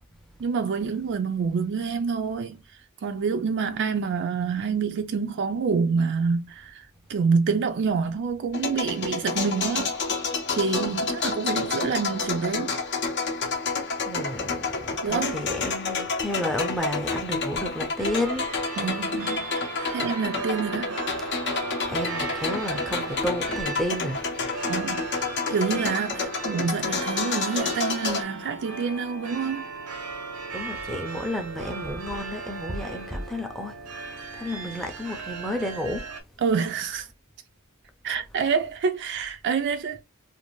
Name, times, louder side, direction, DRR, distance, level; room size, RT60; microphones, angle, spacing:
voice 1, 0.4-2.6 3.0-10.0 10.6-12.7 15.0-15.4 18.8-21.0 24.6-25.0 25.5-29.7 36.4-37.1 38.0-40.0, right 5 dB, 55° right, 0.4 m, -27 dB
sound 1, 8.5-28.2, left 4 dB, 50° left, 0.6 m, -29 dB
voice 2, 14.1-18.4 21.9-24.2 30.5-33.7 34.0-36.0, left 1 dB, ahead, 0.5 m, -31 dB
sound 2, 18.0-36.2, right 4 dB, 85° right, 0.7 m, -37 dB
2.6 x 2.5 x 3.0 m
head